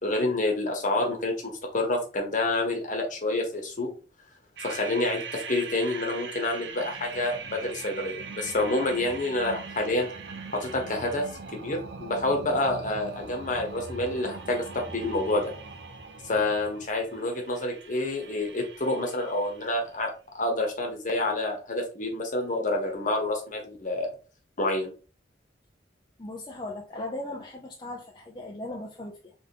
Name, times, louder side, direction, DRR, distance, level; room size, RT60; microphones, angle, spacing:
voice 1, 0.0-3.9 4.6-10.1 10.5-11.3 11.5-15.5 16.2-24.1 24.6-24.9, left 2 dB, 45° left, 1.3 m, -28 dB
sound 1, 4.6-19.9, right 4 dB, 75° right, 0.7 m, -41 dB
voice 2, 26.2-29.3, left 2 dB, 25° left, 0.7 m, -38 dB
3.6 x 3.5 x 3.8 m
head